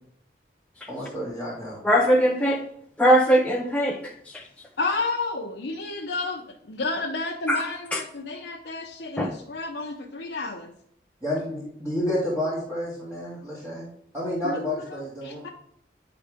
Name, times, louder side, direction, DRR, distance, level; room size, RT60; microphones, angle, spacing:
voice 1, 0.9-1.8 11.2-13.8 14.1-15.5, left 1 dB, 15° right, -9 dB, 2.0 m, -30 dB
voice 2, 1.8-2.6 3.0-4.4 7.5-7.6 7.9-8.0 9.2-9.3, equal, 5° left, 0 dB, 0.5 m, -21 dB
voice 3, 4.8-10.7 14.4-15.5, left 3 dB, 80° left, -2 dB, 0.8 m, -31 dB
10.0 x 4.9 x 3.6 m, 0.69 s
head